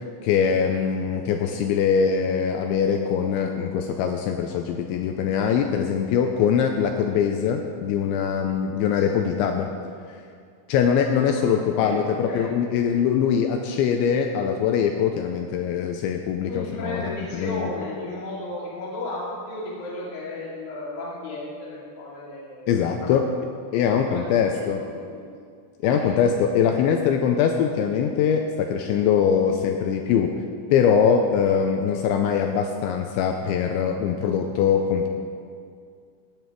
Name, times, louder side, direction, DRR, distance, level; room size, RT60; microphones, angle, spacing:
voice 1, 0.2-9.7 10.7-17.0 17.3-17.7 22.7-23.2 23.7-24.8 25.8-30.3 30.7-35.1, left 7 dB, 90° left, 4 dB, 2.7 m, -22 dB
voice 2, 11.3-12.0 12.3-12.5 16.5-23.1 23.8-25.2 25.8-26.2 26.7-27.0 31.4-31.6, left 2 dB, 50° left, -7 dB, 3.7 m, -34 dB
16.5 x 9.5 x 4.7 m, 2.2 s
omnidirectional pair, 5.9 m